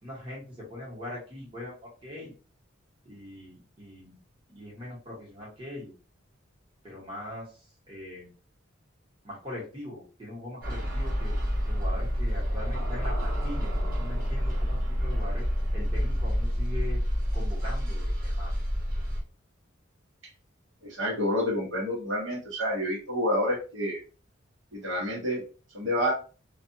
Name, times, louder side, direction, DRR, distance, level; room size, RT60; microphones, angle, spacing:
voice 1, 0.0-2.3 3.0-4.1 4.5-5.9 6.8-7.6 7.9-8.3 9.2-11.4 11.7-15.5 15.7-17.0 17.3-18.5, left 1 dB, 25° right, -5 dB, 1.2 m, -41 dB
sound 1, 10.6-19.2, equal, 50° right, 1.3 m, -28 dB
voice 2, 20.8-24.0 24.7-25.4 25.7-26.1, equal, 70° right, -3 dB, 1.1 m, -28 dB
2.5 x 2.3 x 2.6 m, 0.36 s
head